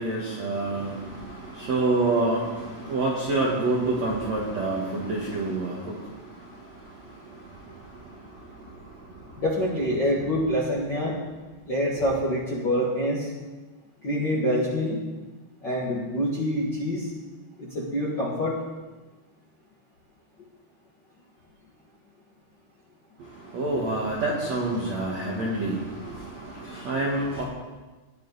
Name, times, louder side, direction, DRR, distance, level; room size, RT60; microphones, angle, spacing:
voice 1, 0.0-9.4 23.2-27.4, right 2 dB, 55° right, -4 dB, 1.9 m, -28 dB
voice 2, 9.4-11.2 11.7-13.3 14.0-15.0 15.6-17.1 17.6-18.6, equal, 70° left, -6 dB, 1.0 m, -26 dB
18.0 x 10.5 x 4.1 m, 1.2 s
omnidirectional pair, 5.3 m